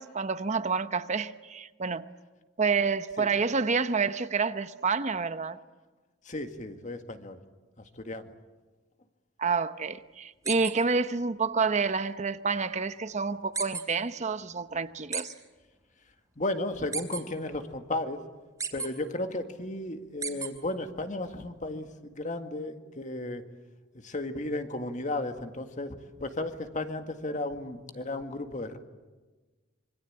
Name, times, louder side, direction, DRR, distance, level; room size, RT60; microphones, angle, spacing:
voice 1, 0.0-2.1 2.6-5.6 9.4-15.3, right 5 dB, 40° right, 0.8 m, -28 dB
voice 2, 6.3-7.4 8.0-8.3 16.4-18.2 18.7-23.4 23.9-28.8, left 2 dB, 40° left, 1.9 m, -34 dB
sound 1, 10.4-10.7 13.5-13.8 15.1-15.2 16.9-17.2 18.6-18.9 20.2-20.5, right 5 dB, 15° right, 3.5 m, -32 dB
26.0 x 24.5 x 8.8 m
head